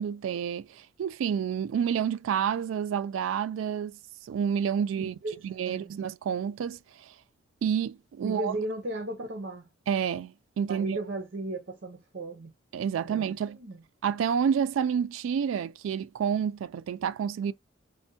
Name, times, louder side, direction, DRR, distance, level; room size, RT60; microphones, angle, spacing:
voice 1, 0.0-5.2 5.4-7.1 7.6-8.6 9.9-11.0 12.7-13.6 14.0-17.5, right 7 dB, 90° right, 0.3 m, -29 dB
voice 2, 5.0-5.4 5.7-5.9 8.2-9.6 10.7-12.5 13.0-13.8, right 1 dB, 55° right, 0.7 m, -36 dB
4.3 x 2.1 x 2.6 m
head